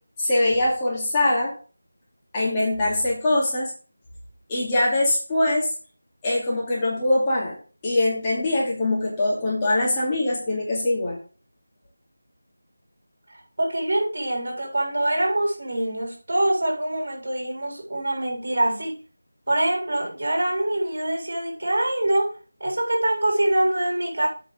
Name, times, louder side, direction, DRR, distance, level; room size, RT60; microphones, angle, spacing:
voice 1, 0.2-1.5 2.3-3.7 4.5-5.7 6.2-7.6 7.8-11.2, left 1 dB, 15° left, 2.5 m, -22 dB
voice 2, 13.6-19.0 19.5-22.3 22.6-24.3, right 1 dB, 55° right, 3.9 m, -24 dB
8.6 x 4.9 x 6.4 m
figure-of-eight pair, 170°, 0 cm